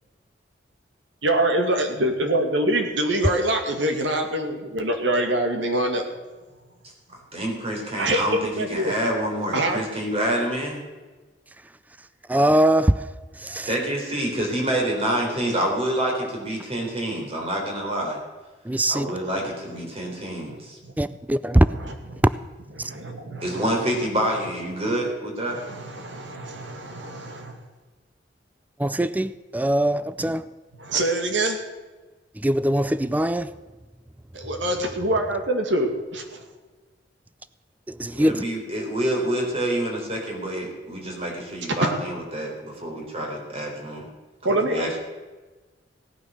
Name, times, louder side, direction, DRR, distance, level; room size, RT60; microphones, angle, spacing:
voice 1, 1.2-6.1 7.9-8.9 9.5-9.8 20.5-20.6 20.8-20.9 21.8-22.2 22.8-23.6 25.5-27.6 30.8-31.6 34.3-36.4 41.8-41.9 44.4-44.9, right 1 dB, 80° right, 2.2 m, -25 dB
voice 2, 7.1-10.8 13.7-18.2 18.9-20.8 23.4-25.7 38.1-44.1 44.5-45.0, right 1 dB, 35° right, 3.9 m, -27 dB
voice 3, 12.3-13.0 13.4-13.7 18.7-19.1 21.0-21.7 22.8-22.9 28.8-30.4 32.4-33.5 37.9-38.4, right 1 dB, 10° right, 0.4 m, -21 dB
17.0 x 9.5 x 6.6 m
head